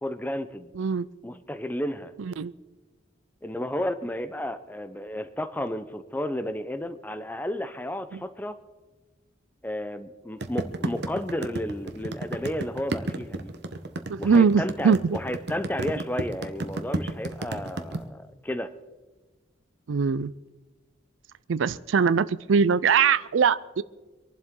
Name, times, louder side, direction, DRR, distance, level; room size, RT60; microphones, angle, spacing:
voice 1, 0.0-0.7 1.2-2.1 3.4-8.6 9.6-13.5 14.2-18.7, left 1 dB, 10° left, 11 dB, 0.7 m, -32 dB
voice 2, 0.7-1.1 2.2-2.5 8.1-8.2 14.1-15.2 19.9-20.3 21.5-23.8, right 6 dB, 85° right, 18 dB, 0.4 m, -22 dB
sound 1, 10.4-18.0, right 2 dB, 60° right, 1.1 m, -31 dB
26.0 x 11.5 x 3.8 m, 1.2 s
head